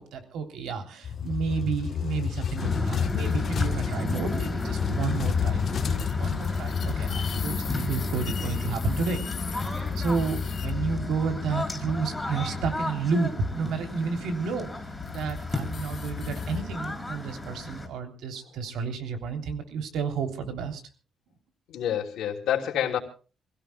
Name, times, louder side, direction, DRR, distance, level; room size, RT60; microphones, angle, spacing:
voice 1, 0.0-9.2 9.5-14.7 15.1-20.8, right 5 dB, 85° right, 6 dB, 3.4 m, -31 dB
sound 1, 1.0-11.9 14.9-16.6, left 7 dB, 45° left, 1.2 m, -31 dB
sound 2, 2.6-17.9, left 2 dB, 10° left, 4.5 m, -33 dB
voice 2, 21.7-23.0, left 10 dB, 85° left, 0 dB, 3.2 m, -28 dB
27.5 x 17.0 x 2.3 m, 0.37 s
cardioid pair, 155°, 0 cm